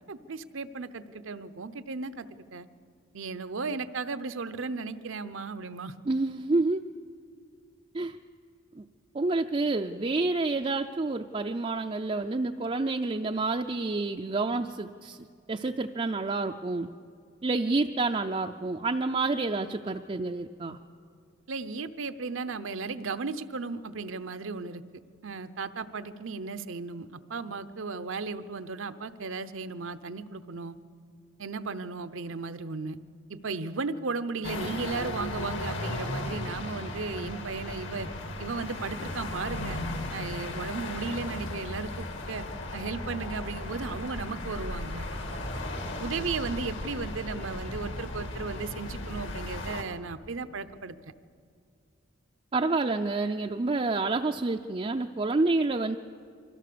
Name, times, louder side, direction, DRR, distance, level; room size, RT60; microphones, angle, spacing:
voice 1, 0.1-2.7 3.1-5.9 21.5-24.8 25.2-30.8 31.4-33.0 33.3-38.1 38.4-39.8 40.1-42.5 42.7-45.1 46.0-51.1, right 4 dB, 75° right, 12 dB, 0.7 m, -35 dB
voice 2, 6.1-6.8 7.9-8.2 8.8-8.9 9.1-15.2 15.5-16.9 17.4-20.8 52.5-56.0, right 3 dB, 30° right, 3 dB, 0.4 m, -28 dB
sound 1, 34.4-49.8, left 1 dB, 65° left, 1.9 m, -36 dB
24.0 x 16.0 x 6.8 m, 2.5 s
head